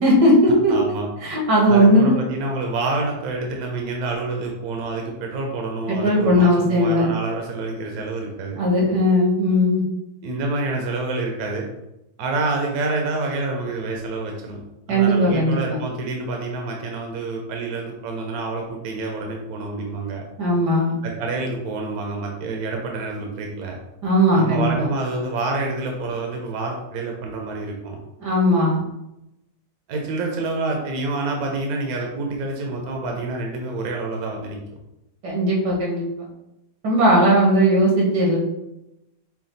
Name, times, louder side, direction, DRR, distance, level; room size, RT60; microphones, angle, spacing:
voice 1, 0.0-0.8 1.2-2.2 5.9-7.1 8.6-9.8 14.9-15.8 20.4-21.0 24.0-24.9 28.2-28.8 35.2-36.3 36.8-38.4, equal, 90° right, -3 dB, 2.0 m, -18 dB
voice 2, 0.7-1.1 1.7-8.6 10.2-11.7 12.2-14.6 14.9-20.2 21.0-23.8 24.4-28.0 29.9-34.6, right 3 dB, 70° right, 1 dB, 1.2 m, -27 dB
5.8 x 2.3 x 3.9 m, 0.90 s
omnidirectional pair, 1.7 m